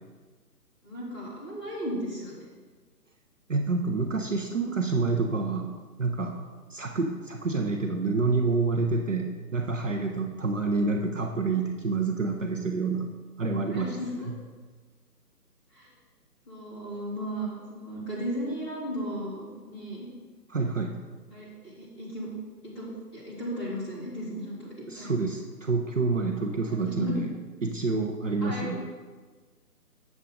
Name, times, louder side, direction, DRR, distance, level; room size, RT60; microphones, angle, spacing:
voice 1, 0.8-2.4 13.7-14.3 15.7-15.9 16.5-20.1 21.3-22.3 22.6-24.7 24.9-25.2 26.7-27.2 28.4-28.8, equal, 15° left, -10 dB, 2.1 m, -35 dB
voice 2, 3.5-6.4 6.7-13.1 13.4-14.0 20.5-21.0 24.9-27.3 27.6-28.8, right 3 dB, 50° right, 3 dB, 0.7 m, -28 dB
8.1 x 7.2 x 3.8 m, 1.4 s
hypercardioid pair, 175°, 49 cm